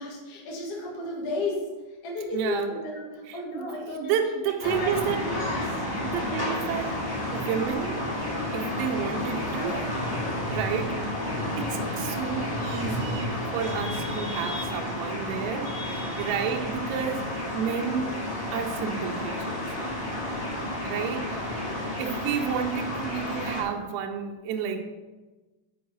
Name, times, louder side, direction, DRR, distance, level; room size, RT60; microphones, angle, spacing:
voice 1, 0.0-4.1 4.4-5.8 15.8-16.2, left 2 dB, 75° left, -3 dB, 1.4 m, -34 dB
voice 2, 2.3-2.7 3.3-5.2 6.0-7.0 7.3-8.1 8.5-9.8 10.5-11.0 11.6-18.2 18.5-19.7 20.8-21.5 22.0-24.8, right 8 dB, 90° right, 4 dB, 3.4 m, -31 dB
sound 1, 4.6-23.6, left 1 dB, 15° left, 1.8 m, -31 dB
8.2 x 4.7 x 6.0 m, 1.2 s
omnidirectional pair, 5.8 m